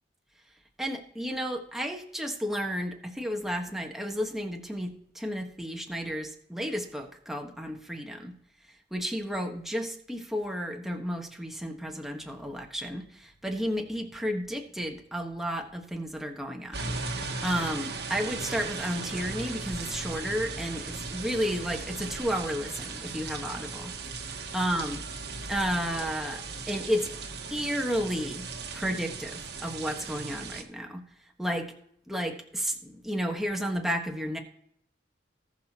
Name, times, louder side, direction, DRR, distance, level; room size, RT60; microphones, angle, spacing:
voice 1, 0.8-8.3 8.9-23.9 24.5-25.0 25.5-27.1 27.5-28.5 28.7-31.0 31.4-31.7 32.1-34.4, equal, ahead, 1 dB, 1.4 m, -32 dB
sound 1, 16.7-30.6, right 4 dB, 65° right, 1.4 m, -37 dB
19.0 x 6.5 x 2.9 m, 0.70 s
head